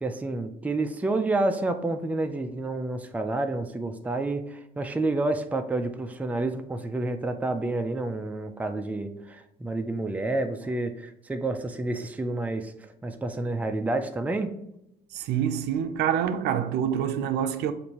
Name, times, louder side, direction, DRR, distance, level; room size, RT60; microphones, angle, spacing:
voice 1, 0.0-14.5, right 2 dB, 10° right, 0.4 m, -29 dB
voice 2, 15.1-17.7, right 9 dB, 80° right, 0.4 m, -26 dB
6.6 x 2.6 x 2.9 m
cardioid pair, 110°, 17 cm